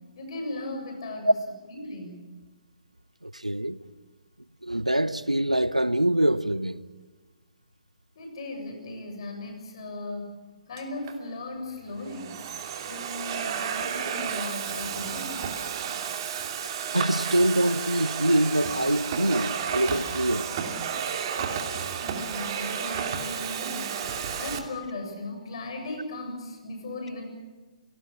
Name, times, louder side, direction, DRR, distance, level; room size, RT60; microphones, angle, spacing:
voice 1, 0.1-1.3 1.7-2.2 8.2-10.4 10.7-12.4 12.8-15.6 22.0-24.0 24.4-27.3, left 2 dB, 50° left, 7.4 m, -37 dB
voice 2, 3.2-3.8 4.6-6.7 16.9-20.5 21.4-21.7, right 1 dB, 90° right, 1.0 m, -24 dB
Domestic sounds home sounds, 10.8-11.2 11.9-24.6, right 7 dB, 40° right, 2.8 m, -32 dB
27.5 x 18.5 x 7.2 m
figure-of-eight pair, 125°, 4 cm